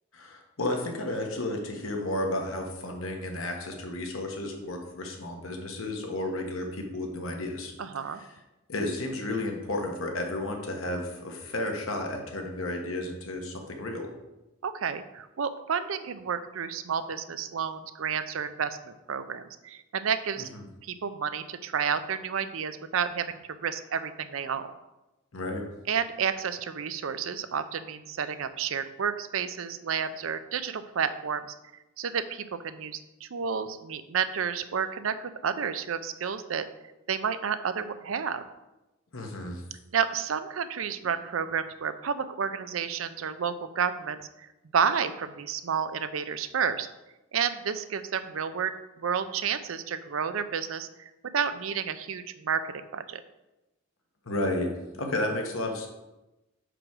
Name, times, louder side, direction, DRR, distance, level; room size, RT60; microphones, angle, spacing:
voice 1, 0.1-7.7 8.1-8.3 8.7-14.1 20.4-20.7 25.3-25.7 39.1-39.6 54.2-55.9, left 1 dB, 80° left, 2 dB, 1.3 m, -32 dB
voice 2, 7.8-8.2 14.6-20.5 20.8-24.7 25.9-31.5 32.0-36.7 37.1-38.4 39.9-44.5 44.7-46.9 47.3-53.2, right 7 dB, 75° right, 11 dB, 0.5 m, -31 dB
5.0 x 4.8 x 6.1 m, 1.0 s
head